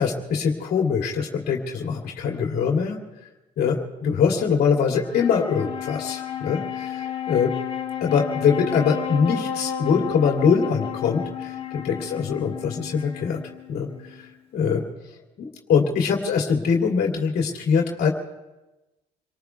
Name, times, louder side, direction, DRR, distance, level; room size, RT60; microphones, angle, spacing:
voice 1, 0.0-3.0 3.6-7.5 8.0-13.4 13.7-14.8 15.4-18.1, left 6 dB, 70° left, 0 dB, 2.6 m, -23 dB
Wind instrument woodwind instrument, 4.9-14.4, left 9 dB, 35° left, 1.7 m, -32 dB
29.0 x 20.0 x 2.4 m, 1.0 s
cardioid pair, 110°, 17 cm